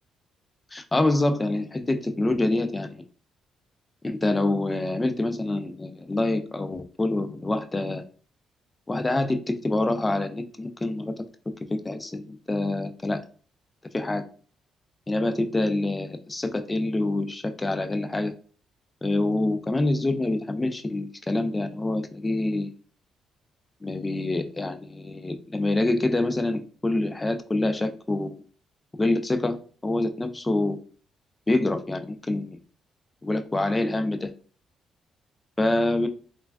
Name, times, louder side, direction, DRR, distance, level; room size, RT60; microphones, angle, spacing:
voice 1, 0.7-3.0 4.0-8.0 8.9-11.1 11.8-13.2 13.9-14.2 15.1-18.3 19.0-22.7 23.8-28.3 29.0-29.6 29.8-30.8 31.5-32.6 33.2-34.3 35.6-36.1, left 2 dB, 20° left, 8 dB, 0.3 m, -26 dB
3.2 x 2.2 x 2.2 m, 0.41 s
cardioid pair, 90°, 0 cm